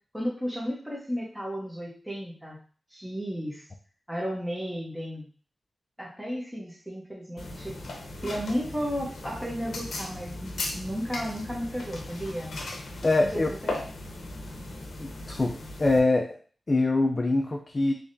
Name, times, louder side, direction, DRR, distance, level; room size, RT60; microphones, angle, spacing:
voice 1, 0.1-2.6 2.9-3.6 4.1-5.3 6.0-7.8 8.2-12.6 13.3-13.4, equal, 10° right, -3 dB, 0.9 m, -33 dB
sound 1, 7.4-16.0, left 2 dB, 85° left, 0.7 m, -37 dB
voice 2, 13.0-13.5 15.0-16.4 16.7-17.9, left 2 dB, 40° left, 1 dB, 0.4 m, -24 dB
3.5 x 3.2 x 2.6 m, 0.41 s
wide cardioid pair, 70°, 0 cm